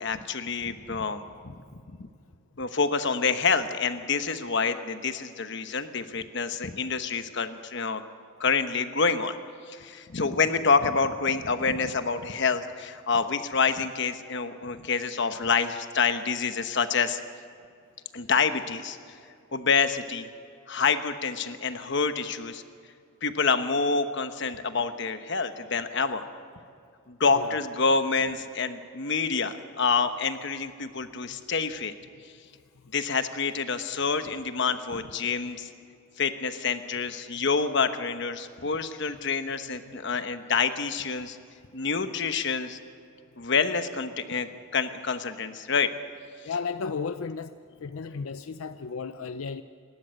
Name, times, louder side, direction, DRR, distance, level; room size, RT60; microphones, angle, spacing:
voice 1, 0.0-1.6 1.9-2.1 2.6-8.0 8.4-9.4 9.7-17.2 18.1-19.0 19.5-20.3 20.7-22.6 23.2-26.2 27.1-31.9 32.2-32.3 32.9-35.7 36.2-41.4 41.7-42.8 43.4-45.9, left 5 dB, 60° left, 9 dB, 1.1 m, -27 dB
voice 2, 46.4-47.5 47.8-49.6, left 5 dB, 85° left, 10 dB, 0.6 m, -34 dB
27.5 x 12.5 x 7.7 m, 2.2 s
head